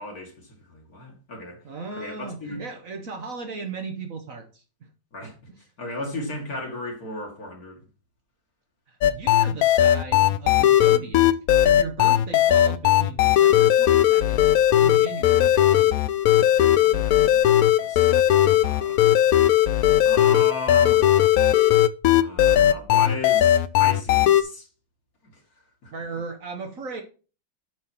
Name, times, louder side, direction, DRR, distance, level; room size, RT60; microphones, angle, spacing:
voice 1, 0.0-1.6 1.9-2.6 5.1-5.3 5.8-7.8 16.3-19.1 20.0-21.1 22.2-24.7 25.3-25.4 25.8-25.9, left 1 dB, 55° left, 2.4 m, -36 dB
voice 2, 1.6-4.9 5.5-5.6 8.9-14.4 14.8-16.0 19.3-19.4 25.9-27.0, right 4 dB, 55° right, 1.3 m, -37 dB
sound 1, 9.0-24.4, left 12 dB, 75° left, 0.8 m, -18 dB
7.7 x 5.6 x 4.3 m
omnidirectional pair, 2.0 m